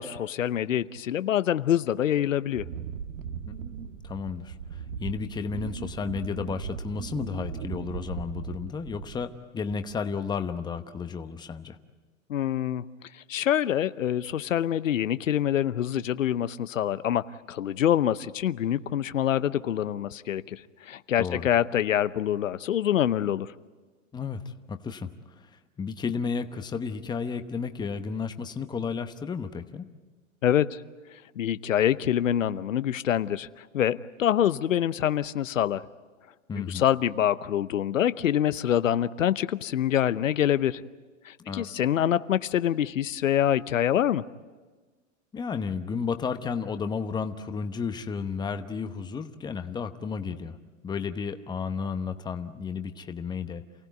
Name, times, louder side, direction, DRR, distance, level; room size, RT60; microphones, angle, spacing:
voice 1, 0.0-2.6 12.3-12.8 13.3-23.5 30.4-30.8 31.4-35.8 36.5-40.8 41.2-44.2, left 10 dB, 85° left, 15 dB, 0.8 m, -25 dB
Wind, 2.5-9.4 9.7-10.2, right 7 dB, 75° right, 1.5 m, -38 dB
voice 2, 4.0-11.8 21.2-21.5 24.1-25.1 25.4-25.5 25.8-29.9 36.5-36.8 41.4-41.7 45.3-50.6 50.8-53.6, left 5 dB, 10° left, 8 dB, 1.0 m, -32 dB
28.5 x 16.0 x 9.3 m, 1.4 s
hypercardioid pair, 125°, 38 cm